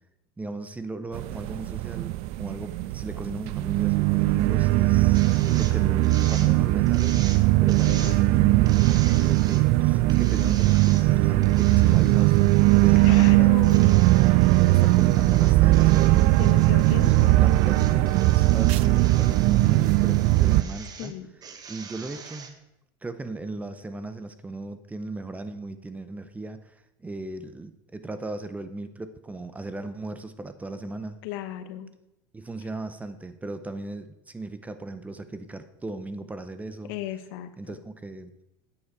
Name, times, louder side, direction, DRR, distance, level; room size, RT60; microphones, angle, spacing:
voice 1, 0.4-7.2 7.6-13.5 14.6-16.5 17.0-21.1 21.7-22.6 23.0-31.2 32.3-36.9 37.6-38.3, right 2 dB, 10° right, 11 dB, 0.7 m, -37 dB
sound 1, 1.1-20.6, right 18 dB, 60° right, 0.4 m, -20 dB
sound 2, 5.1-5.7 6.0-6.5 6.9-7.4 7.7-8.2 8.7-9.6 10.1-11.0 11.4-13.3 13.6-21.1 21.4-22.5, right 6 dB, 35° right, 1.2 m, -43 dB
voice 2, 13.0-14.0 16.3-17.4 21.0-21.3 31.2-31.9 36.9-37.5, left 13 dB, 70° left, 11 dB, 1.0 m, -35 dB
9.2 x 8.7 x 4.6 m, 0.86 s
supercardioid pair, 115°, 12 cm